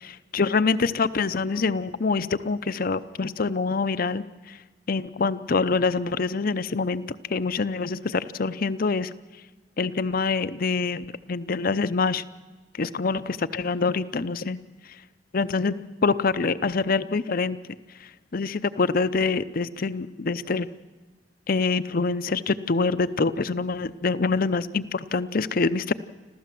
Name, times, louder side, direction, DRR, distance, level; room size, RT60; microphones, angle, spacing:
voice 1, 0.0-4.6 4.9-9.1 9.8-12.2 12.8-14.6 15.3-15.7 16.0-17.6 18.3-20.7 21.5-25.9, left 4 dB, 50° left, 14 dB, 0.6 m, -25 dB
26.5 x 15.0 x 7.6 m, 1.3 s
head